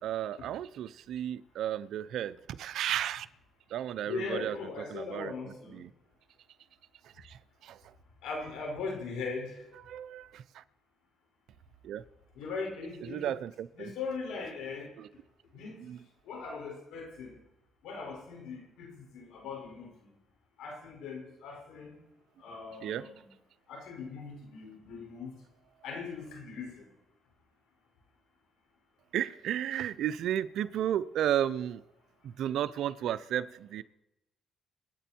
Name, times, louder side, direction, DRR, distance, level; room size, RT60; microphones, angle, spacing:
voice 1, 0.0-3.3 3.7-4.6 4.9-5.9 7.0-7.9 9.9-10.6 11.8-12.0 13.0-13.9 15.0-15.1 15.8-16.0 22.8-23.1 29.1-31.8 32.2-33.8, right 11 dB, 75° right, 14 dB, 0.7 m, -34 dB
voice 2, 4.0-5.8 8.2-9.6 12.4-13.3 13.8-14.9 15.5-15.9 16.3-17.3 17.8-19.9 20.6-21.9 22.4-23.1 23.7-25.3 25.8-26.9, left 4 dB, 90° left, 0 dB, 5.7 m, -39 dB
27.0 x 9.5 x 4.6 m, 0.90 s
cardioid pair, 90°, 0 cm